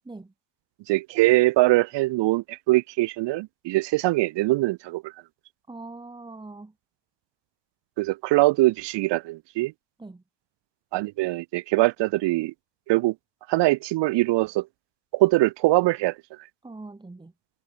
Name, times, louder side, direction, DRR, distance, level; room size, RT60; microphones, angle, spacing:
voice 1, 0.9-5.1 8.0-9.7 10.9-12.5 12.9-13.2 13.5-14.7 15.1-16.2, right 19 dB, 60° right, 1.9 m, -22 dB
voice 2, 5.7-6.7 10.0-10.2 16.6-17.3, right 3 dB, 10° right, 3.0 m, -41 dB
cardioid pair, 125°, 48 cm